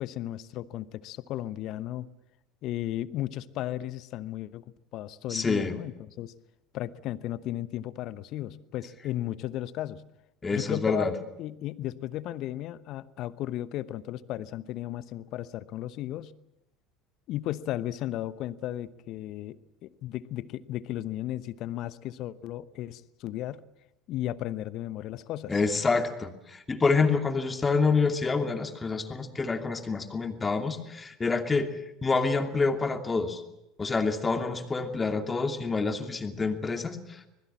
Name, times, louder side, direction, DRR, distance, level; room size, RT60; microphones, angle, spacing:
voice 1, 0.0-2.1 2.6-4.6 4.9-6.3 6.7-10.0 10.5-11.1 11.4-16.4 17.3-23.6 24.1-25.6, left 13 dB, 50° left, 16 dB, 1.0 m, -35 dB
voice 2, 5.3-5.8 10.4-11.1 25.5-31.7 32.0-33.4 33.8-37.3, left 4 dB, 20° left, 5 dB, 2.7 m, -27 dB
25.5 x 20.5 x 7.4 m, 0.89 s
figure-of-eight pair, 70°, 0 cm